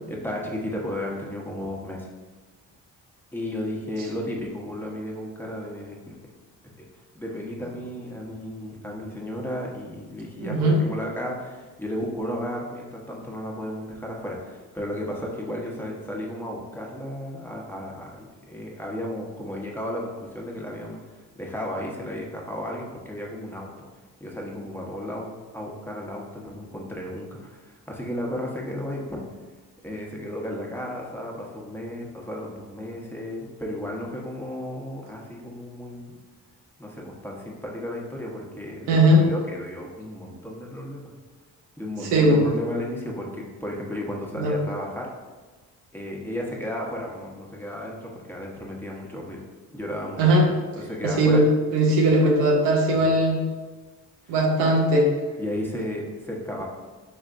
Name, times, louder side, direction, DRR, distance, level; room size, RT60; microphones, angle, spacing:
voice 1, 0.1-2.1 3.3-6.2 6.8-6.9 7.1-21.0 21.3-23.9 24.2-29.2 29.8-36.2 36.8-41.1 41.8-45.1 45.9-49.4 49.7-50.2 50.7-51.4 52.9-53.0 54.3-54.4 55.4-56.6, left 1 dB, 5° left, -2 dB, 1.0 m, -34 dB
voice 2, 10.4-10.8 38.9-39.3 42.1-42.5 44.3-44.6 50.2-50.5 51.0-51.5 51.7-53.4 54.3-55.1, right 1 dB, 90° right, 0 dB, 0.8 m, -19 dB
4.3 x 3.4 x 2.5 m, 1.3 s
supercardioid pair, 50°, 41 cm